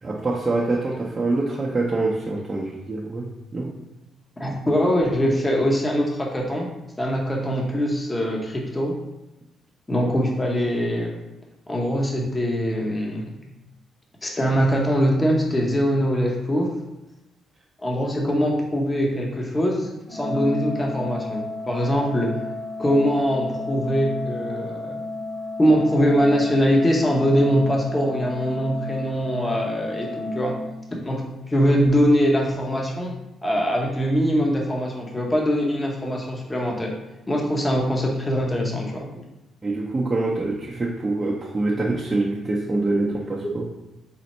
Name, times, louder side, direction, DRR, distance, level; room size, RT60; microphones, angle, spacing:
voice 1, 0.0-3.7 39.6-43.7, right 2 dB, 25° right, -4 dB, 0.5 m, -25 dB
voice 2, 4.4-6.7 7.0-9.0 9.9-11.1 11.7-13.4 14.2-16.7 17.8-22.3 22.8-25.1 25.6-30.6 31.0-33.1 33.4-36.9 37.3-39.2 43.4-43.5, equal, 20° left, -1 dB, 0.7 m, -22 dB
Organ, 20.1-31.1, left 2 dB, 55° left, 1.4 m, -32 dB
4.3 x 2.0 x 4.1 m, 0.97 s
cardioid pair, 90°, 0 cm